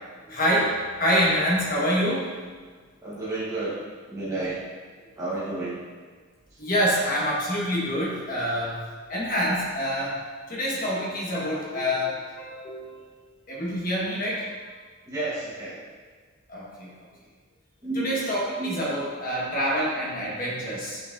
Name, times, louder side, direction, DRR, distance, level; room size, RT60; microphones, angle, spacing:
voice 1, 0.3-2.3 6.6-8.8 9.1-10.2 10.5-13.1 13.5-14.5 16.5-16.9 17.9-21.0, equal, 40° left, -5 dB, 1.4 m, -26 dB
voice 2, 3.0-4.7 5.2-5.8 6.5-6.6 15.0-15.8 17.8-18.2 18.6-18.7, right 2 dB, 15° right, -9 dB, 1.2 m, -31 dB
7.0 x 5.9 x 2.6 m, 1.5 s
head